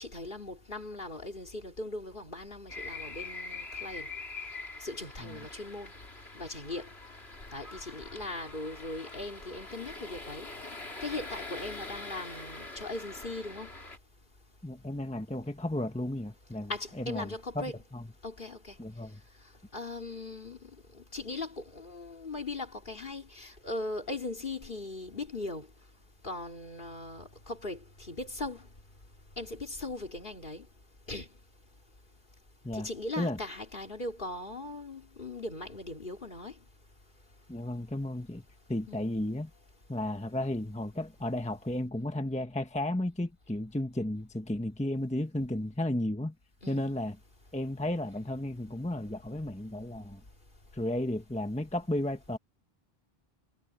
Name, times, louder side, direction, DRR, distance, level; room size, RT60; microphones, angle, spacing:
voice 1, 0.0-4.1 4.8-5.9 6.3-6.9 7.5-10.5 11.0-13.7 16.7-17.7 18.2-18.8 19.7-25.7 26.2-28.6 29.4-30.7 31.1-31.3 32.7-36.5 38.9-39.1 46.6-46.9, left 2 dB, 55° left, 3.3 m, -39 dB
sound 1, 2.7-14.0, left 3 dB, 80° left, 3.9 m, -44 dB
voice 2, 14.6-16.7 17.0-18.1 18.8-19.2 32.6-32.9 33.2-33.4 37.5-38.4 38.7-39.5 39.9-46.3 46.7-47.2 47.5-50.2 50.7-52.4, left 1 dB, 5° left, 1.0 m, -33 dB
omnidirectional pair, 1.0 m